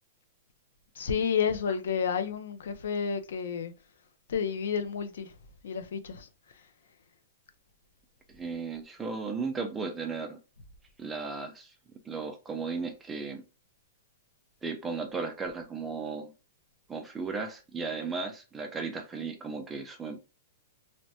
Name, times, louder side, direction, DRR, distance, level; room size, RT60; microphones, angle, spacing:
voice 1, 1.0-3.7 4.3-5.3 5.6-6.3, left 6 dB, 75° left, 0.5 m, -30 dB
voice 2, 8.3-10.4 11.0-11.7 12.0-13.4 14.6-16.3 16.9-20.2, right 4 dB, 10° right, 0.4 m, -35 dB
3.2 x 2.1 x 2.7 m
hypercardioid pair, 170°, 0 cm